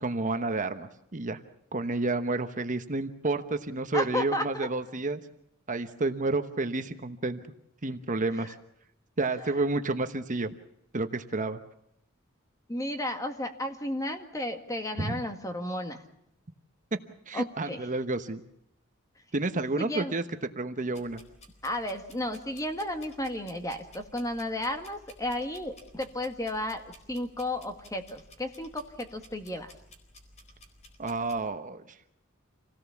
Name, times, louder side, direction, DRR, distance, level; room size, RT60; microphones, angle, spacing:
voice 1, 0.0-1.4 1.7-5.2 5.7-7.4 7.8-8.5 9.2-10.5 10.9-11.6 15.0-15.2 17.3-18.4 19.3-20.2 20.6-21.2 31.0-31.8, right 3 dB, 40° right, 8 dB, 1.1 m, -30 dB
voice 2, 3.9-4.7 12.7-16.0 17.3-17.8 19.8-20.1 21.6-26.8 27.1-29.7, left 1 dB, 15° left, 6 dB, 1.9 m, -33 dB
sound 1, 20.9-31.4, left 1 dB, 35° left, 4.2 m, -55 dB
27.5 x 17.5 x 7.2 m, 0.78 s
head